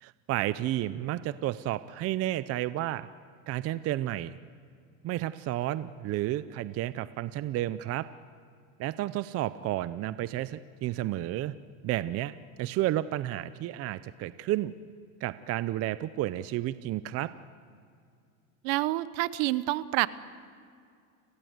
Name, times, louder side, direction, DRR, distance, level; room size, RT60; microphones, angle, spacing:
voice 1, 0.0-3.1 3.5-4.4 5.0-8.0 8.8-11.5 11.8-12.3 12.6-14.7 15.2-17.3, right 14 dB, 35° right, 15 dB, 0.6 m, -31 dB
voice 2, 18.6-20.1, right 18 dB, 60° right, 16 dB, 1.0 m, -27 dB
30.0 x 18.5 x 8.0 m, 2.2 s
supercardioid pair, 130°, 42 cm